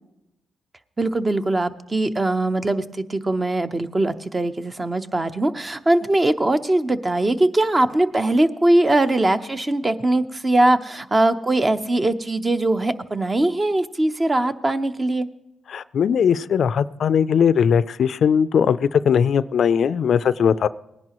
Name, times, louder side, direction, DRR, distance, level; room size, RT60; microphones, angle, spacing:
voice 1, 1.0-15.3, right 2 dB, 25° right, 10 dB, 0.7 m, -21 dB
voice 2, 15.7-20.7, left 7 dB, 70° left, 16 dB, 0.3 m, -19 dB
19.0 x 10.5 x 3.0 m, 0.90 s
cardioid pair, 85°, 0 cm